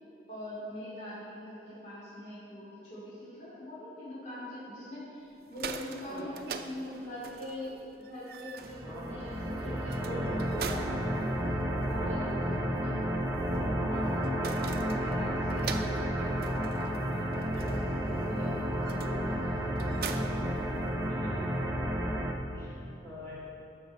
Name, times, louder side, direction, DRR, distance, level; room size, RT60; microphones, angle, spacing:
voice 1, 0.3-11.3 11.8-13.0 13.5-20.6, left 1 dB, 40° left, -9 dB, 2.5 m, -43 dB
sound 1, 5.3-21.3, right 6 dB, 55° right, 0.4 m, -45 dB
voice 2, 6.1-6.4 8.8-9.1 10.0-10.4 12.0-12.5 19.8-20.0 21.1-21.6 22.5-22.8 23.0-23.4, equal, 15° left, -9 dB, 2.0 m, -46 dB
sound 2, 8.6-22.3, equal, 15° right, 0.6 m, -31 dB
11.5 x 6.7 x 4.5 m, 2.8 s
head